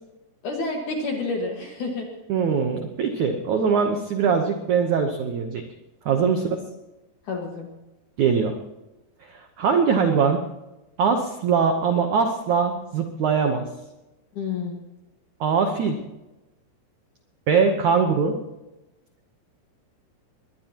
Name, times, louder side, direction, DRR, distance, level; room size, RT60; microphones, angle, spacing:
voice 1, 0.4-2.1 6.2-6.6 7.3-7.7 14.3-14.8, left 3 dB, 55° left, 1 dB, 2.7 m, -29 dB
voice 2, 2.3-5.6 6.0-6.6 8.2-8.6 9.3-10.4 11.0-13.6 15.4-16.0 17.5-18.3, right 6 dB, 85° right, 5 dB, 1.7 m, -22 dB
21.5 x 20.5 x 3.0 m, 1.0 s
omnidirectional pair, 5.2 m